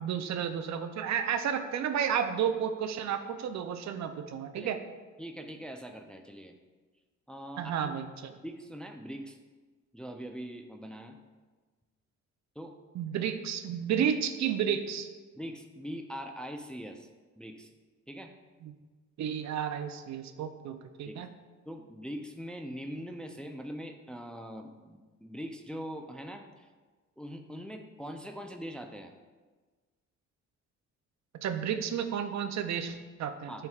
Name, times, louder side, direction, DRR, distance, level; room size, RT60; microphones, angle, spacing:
voice 1, 0.0-4.8 7.6-8.3 13.0-15.1 18.6-18.7 19.2-21.3 31.3-33.7, right 8 dB, 65° right, 8 dB, 0.6 m, -32 dB
voice 2, 5.2-6.5 7.3-8.0 8.4-9.4 9.9-11.2 12.6-12.7 15.4-17.1 17.4-17.7 18.1-18.3 21.0-21.2 21.7-26.7 27.2-29.1 33.5-33.7, equal, 5° left, 4 dB, 0.4 m, -42 dB
9.4 x 4.5 x 2.4 m, 1.3 s
cardioid pair, 90°, 30 cm